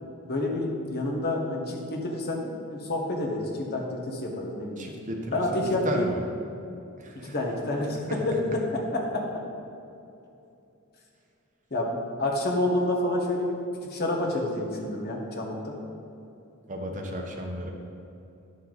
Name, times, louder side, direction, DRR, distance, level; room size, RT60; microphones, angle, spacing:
voice 1, 0.2-4.9 5.3-6.1 7.2-8.6 9.1-9.2 11.7-15.8, left 1 dB, 45° left, -1 dB, 1.4 m, -29 dB
voice 2, 4.8-6.2 7.0-7.3 7.9-8.1 16.7-17.7, equal, 35° right, 1 dB, 1.0 m, -33 dB
10.5 x 7.1 x 4.0 m, 2.7 s
head